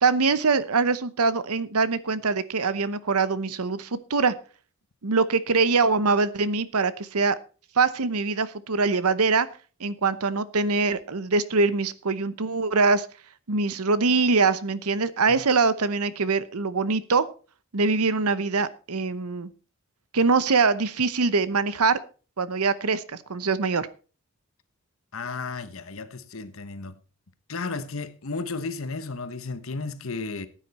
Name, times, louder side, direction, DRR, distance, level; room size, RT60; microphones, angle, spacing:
voice 1, 0.0-4.3 5.0-7.4 7.8-9.5 9.8-13.1 13.5-17.3 17.7-19.5 20.1-22.0 22.4-23.9, right 4 dB, 90° right, 0.9 m, -23 dB
voice 2, 25.1-27.0 27.5-30.5, left 4 dB, 70° left, 1.2 m, -33 dB
15.0 x 9.2 x 4.2 m
head